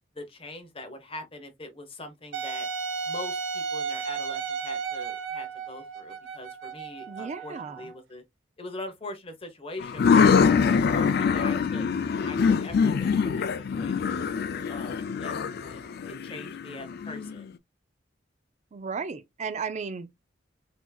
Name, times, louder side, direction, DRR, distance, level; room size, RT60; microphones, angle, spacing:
voice 1, 0.1-2.7 3.1-8.2 8.6-10.3 10.6-11.9 12.2-14.2 14.7-17.5, left 2 dB, 30° left, 0.9 m, -42 dB
Wind instrument woodwind instrument, 2.3-8.0, right 5 dB, 85° right, 0.6 m, -34 dB
voice 2, 7.1-7.8 18.7-20.1, right 5 dB, 40° right, 0.4 m, -34 dB
sound 1, 9.8-17.4, left 6 dB, 55° left, 0.4 m, -24 dB
4.4 x 2.8 x 2.3 m
head